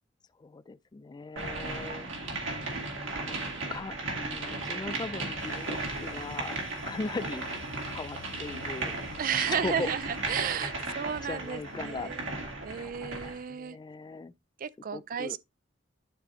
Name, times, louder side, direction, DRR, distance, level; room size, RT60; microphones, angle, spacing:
voice 1, 0.4-2.2 3.1-3.4 3.7-7.5 7.9-9.0 9.4-9.9 10.6-12.1 12.7-14.3 14.9-15.4, left 3 dB, 20° left, 0.3 m, -39 dB
sound 1, 1.4-13.4, right 2 dB, 80° right, 2.3 m, -36 dB
sound 2, 5.4-12.5, left 6 dB, 75° left, 0.7 m, -52 dB
voice 2, 9.2-12.3 12.6-13.8 14.6-15.4, right 8 dB, 45° right, 0.4 m, -33 dB
11.5 x 4.3 x 2.7 m
head